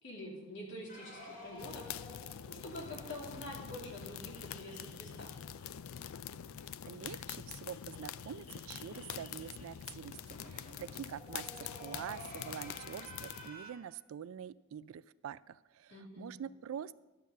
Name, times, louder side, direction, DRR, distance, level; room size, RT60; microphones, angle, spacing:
voice 1, 0.0-5.4 15.9-16.4, left 1 dB, 60° left, -1 dB, 2.6 m, -47 dB
sound 1, 0.9-6.0 6.3-6.4 6.6-6.7 7.0-13.7, left 1 dB, 40° left, 2.4 m, -53 dB
sound 2, 1.6-13.5, left 9 dB, 80° left, 0.4 m, -46 dB
voice 2, 6.9-16.9, right 8 dB, 80° right, 17 dB, 0.3 m, -46 dB
12.0 x 6.7 x 6.5 m, 1.1 s
head